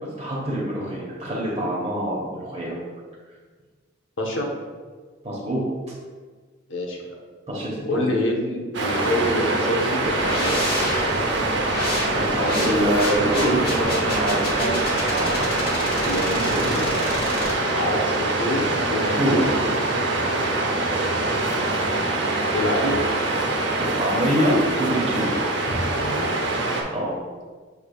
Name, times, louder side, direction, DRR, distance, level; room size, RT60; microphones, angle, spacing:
voice 1, 0.0-2.8 5.2-5.6 7.5-8.1 12.1-16.1 16.3-17.0 19.1-19.4 22.8-22.9 24.0-25.4 26.9-27.1, equal, 35° right, -5 dB, 1.0 m, -25 dB
voice 2, 4.2-4.5 6.7-7.1 7.9-11.0 16.1-16.6 17.7-19.7 22.5-23.0 26.0-26.3, left 1 dB, 85° left, 0 dB, 0.9 m, -27 dB
Waves surf, 8.7-26.8, right 2 dB, 70° right, 0.7 m, -24 dB
sound 1, 10.0-17.5, left 1 dB, 55° left, 1.1 m, -30 dB
6.8 x 3.3 x 2.3 m, 1.5 s
head